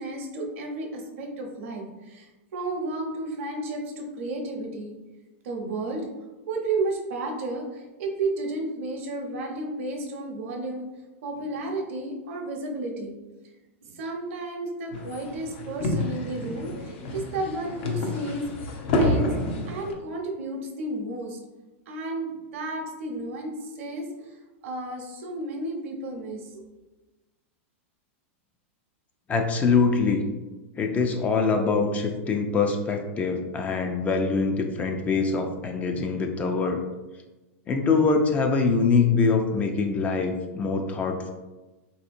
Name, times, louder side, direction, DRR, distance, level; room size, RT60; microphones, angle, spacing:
voice 1, 0.0-4.9 5.4-6.1 6.5-10.8 11.2-13.1 13.8-19.3 19.7-21.4 21.9-26.6, right 2 dB, 70° right, 2 dB, 0.8 m, -32 dB
sound 1, 14.9-19.9, left 1 dB, 60° left, 0.6 m, -28 dB
voice 2, 29.3-30.2 30.8-36.9 37.7-41.3, left 4 dB, 20° left, 4 dB, 0.3 m, -24 dB
3.3 x 2.7 x 2.5 m, 1.1 s
supercardioid pair, 135°, 7 cm